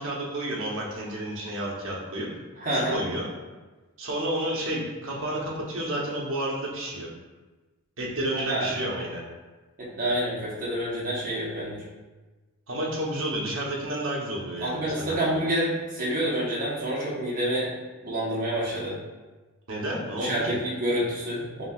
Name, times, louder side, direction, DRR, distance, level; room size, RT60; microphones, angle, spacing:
voice 1, 0.0-2.3 2.7-3.3 4.0-7.1 8.0-9.2 12.7-15.3 19.7-20.6, right 1 dB, 65° right, -3 dB, 0.9 m, -31 dB
voice 2, 2.6-3.0 8.5-8.7 9.8-11.8 14.6-17.7 18.0-19.0 20.2-21.6, right 1 dB, 40° right, -6 dB, 1.1 m, -28 dB
6.0 x 2.7 x 2.4 m, 1.2 s
head